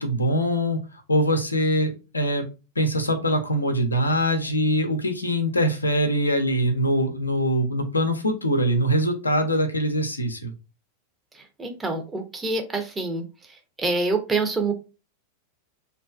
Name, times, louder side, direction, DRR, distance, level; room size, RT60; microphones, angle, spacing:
voice 1, 0.0-2.5 2.8-10.5, equal, 80° left, 5 dB, 0.5 m, -23 dB
voice 2, 11.6-13.2 13.8-14.7, right 3 dB, 15° right, 5 dB, 0.7 m, -26 dB
2.5 x 2.2 x 2.3 m, 0.30 s
figure-of-eight pair, 90°, 0 cm